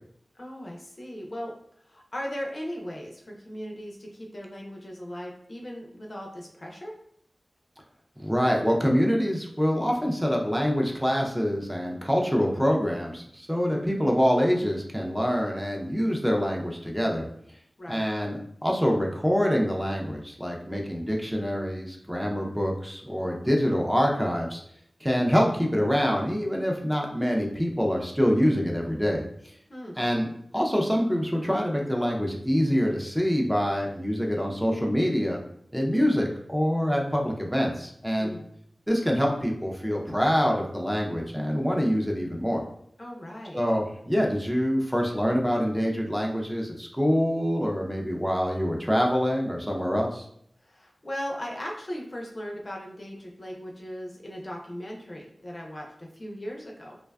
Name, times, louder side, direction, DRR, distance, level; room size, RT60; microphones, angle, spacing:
voice 1, 0.3-1.5 1.9-6.9 17.8-18.0 29.7-30.0 38.2-38.5 43.0-43.6 50.6-57.0, equal, 50° left, -1 dB, 0.5 m, -38 dB
voice 2, 8.2-17.3 17.9-24.6 25.0-29.2 30.0-30.3 30.5-35.4 35.7-38.3 38.9-42.6 43.5-50.3, equal, 5° right, -1 dB, 0.4 m, -25 dB
2.4 x 2.2 x 2.2 m, 0.68 s
wide cardioid pair, 55°, 0 cm